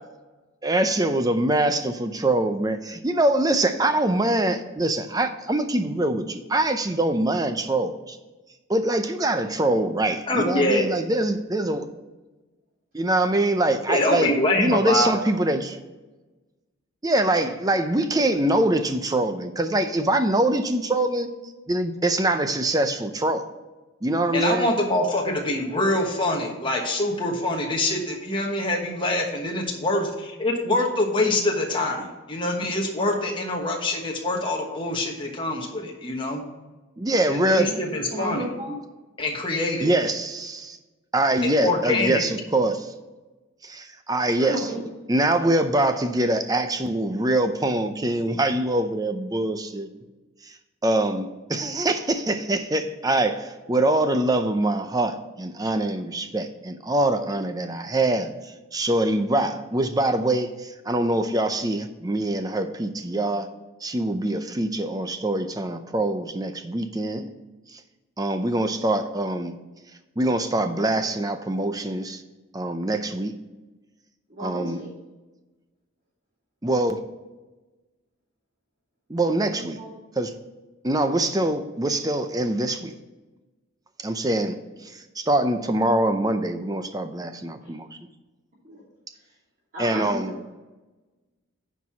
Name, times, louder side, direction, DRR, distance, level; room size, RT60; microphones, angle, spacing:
voice 1, 0.6-8.2 8.7-11.9 12.9-15.8 17.0-21.3 21.7-23.5 24.0-24.7 37.0-37.7 39.8-40.8 41.1-42.9 43.6-44.7 45.1-49.9 50.4-50.6 50.8-63.5 63.8-67.3 67.7-67.8 68.2-69.5 70.2-72.2 72.5-73.3 74.4-74.8 76.6-77.0 79.1-79.8 80.2-80.3 80.8-82.9 84.0-87.9 89.8-90.3, right 1 dB, 15° right, 8 dB, 0.6 m, -24 dB
voice 2, 10.3-10.9 13.9-15.1 24.3-36.4 37.3-38.5 39.2-39.9 41.6-42.2, left 2 dB, 25° left, 0 dB, 1.2 m, -25 dB
voice 3, 37.7-38.8 44.4-44.9 74.3-74.9 79.5-79.9 87.6-87.7 88.6-88.8 89.7-90.5, equal, 40° right, -9 dB, 2.7 m, -34 dB
9.5 x 4.8 x 5.7 m, 1.2 s
head